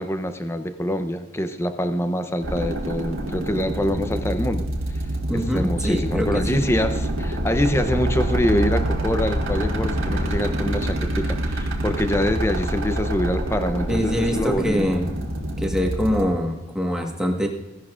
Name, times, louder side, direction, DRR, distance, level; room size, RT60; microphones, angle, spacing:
voice 1, 0.0-4.7 5.3-14.8, left 1 dB, 15° left, 9 dB, 0.6 m, -25 dB
sound 1, 2.4-16.2, right 1 dB, 90° right, 1.7 m, -26 dB
voice 2, 5.3-6.4 13.9-15.1 15.6-17.5, equal, 5° right, 1 dB, 1.4 m, -24 dB
16.0 x 11.5 x 2.5 m, 1.0 s
head